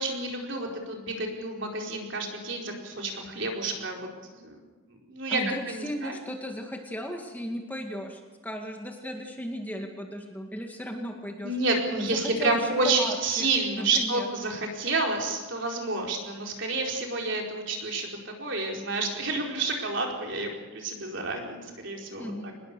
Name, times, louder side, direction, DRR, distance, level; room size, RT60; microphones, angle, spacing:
voice 1, 0.0-4.6 4.9-6.2 11.4-22.5, right 3 dB, 55° right, 1 dB, 4.4 m, -29 dB
voice 2, 5.3-11.6 12.0-13.5 13.8-14.3 22.2-22.5, equal, 10° left, 2 dB, 2.0 m, -36 dB
25.5 x 20.5 x 6.8 m, 1.2 s
head